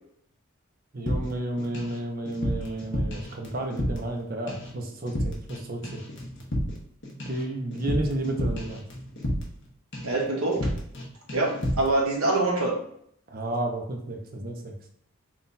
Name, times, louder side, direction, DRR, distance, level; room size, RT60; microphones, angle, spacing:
voice 1, 0.9-6.0 7.3-8.8 13.3-14.7, right 1 dB, 45° right, 3 dB, 0.6 m, -32 dB
sound 1, 1.1-2.0 2.3-4.2 4.5-4.8 5.1-5.6 5.8-9.7 9.9-10.2 10.5-11.0 11.3-11.9, equal, 55° left, 1.0 m, -31 dB
voice 2, 10.0-10.7 11.3-12.8, right 2 dB, 85° right, 1 dB, 1.0 m, -25 dB
3.8 x 2.4 x 4.0 m, 0.68 s
head